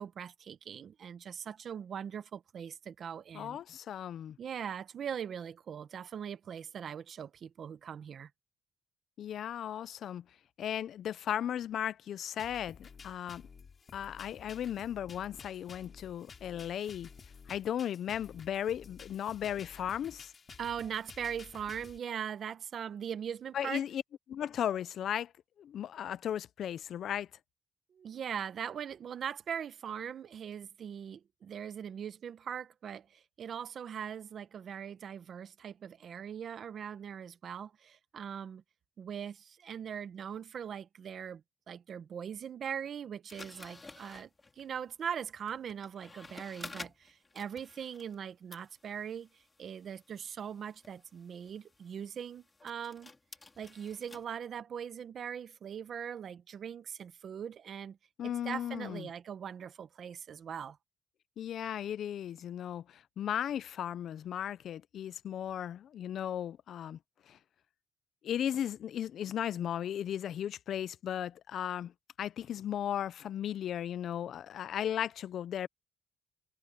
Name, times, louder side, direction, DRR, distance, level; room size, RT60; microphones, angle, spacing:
voice 1, 0.0-3.6 4.4-8.3 20.6-23.8 27.9-38.6 39.0-44.3 44.6-53.1 53.6-58.0 58.2-60.8, right 8 dB, 60° right, 1.3 m, -41 dB
voice 2, 3.3-4.4 9.2-10.2 10.6-13.4 13.9-17.1 17.5-20.3 23.5-24.0 24.3-25.3 25.6-27.3 58.2-59.1 61.4-67.0 67.3-67.4 68.2-71.9 72.2-75.7, left 10 dB, 65° left, 0.5 m, -36 dB
sound 1, 12.4-22.0, left 6 dB, 45° left, 5.0 m, -53 dB
sound 2, 43.3-48.2 48.5-54.2, left 3 dB, 25° left, 3.3 m, -52 dB
cardioid pair, 90°, 0 cm